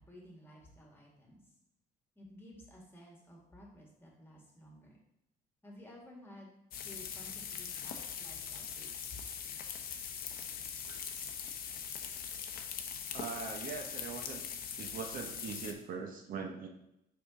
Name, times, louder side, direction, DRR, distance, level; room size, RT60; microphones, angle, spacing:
voice 1, 0.0-1.5 2.2-5.0 5.6-6.5 6.8-9.2, left 1 dB, 15° left, -2 dB, 1.7 m, -54 dB
sound 1, 6.7-15.7, left 7 dB, 60° left, 0.7 m, -42 dB
voice 2, 13.1-14.4 14.8-16.7, right 5 dB, 55° right, 3 dB, 0.8 m, -42 dB
5.1 x 5.1 x 3.7 m, 0.81 s
cardioid pair, 110°, 17 cm